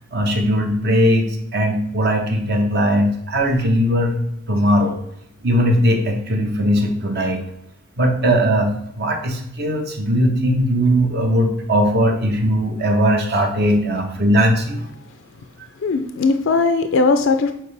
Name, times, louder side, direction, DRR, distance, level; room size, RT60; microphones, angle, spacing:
voice 1, 0.1-4.1 4.5-5.0 5.4-7.4 8.0-8.7 9.0-14.9, equal, 50° right, 3 dB, 1.1 m, -19 dB
voice 2, 15.8-17.5, left 4 dB, 65° left, 7 dB, 0.4 m, -19 dB
7.8 x 4.3 x 3.3 m, 0.77 s
head